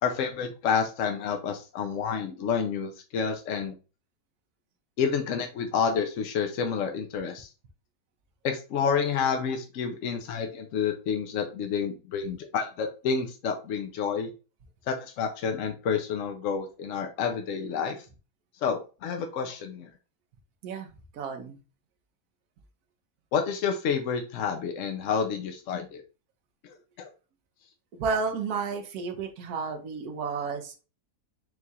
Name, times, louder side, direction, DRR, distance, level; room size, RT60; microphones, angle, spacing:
voice 1, 0.0-3.7 5.0-7.5 8.4-14.3 14.9-18.0 18.6-19.9 23.3-26.0 27.0-27.1, left 6 dB, 65° left, 4 dB, 0.8 m, -29 dB
voice 2, 21.1-21.6 27.9-30.8, right 5 dB, 70° right, 4 dB, 1.3 m, -32 dB
4.7 x 2.4 x 4.0 m, 0.33 s
omnidirectional pair, 1.7 m